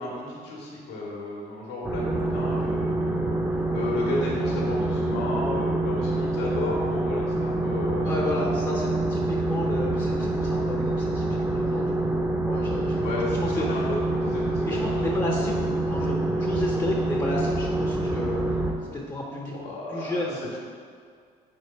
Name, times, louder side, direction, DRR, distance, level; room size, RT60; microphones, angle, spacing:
voice 1, 0.0-8.3 12.8-15.1 19.5-20.6, left 2 dB, 80° left, -4 dB, 1.6 m, -33 dB
sound 1, 1.8-18.7, right 2 dB, 10° right, 0.7 m, -26 dB
voice 2, 8.0-13.8 14.6-18.6 18.9-19.6 19.9-20.4, left 2 dB, 25° left, -2 dB, 0.8 m, -32 dB
5.2 x 3.8 x 5.7 m, 2.1 s
cardioid pair, 110°, 17 cm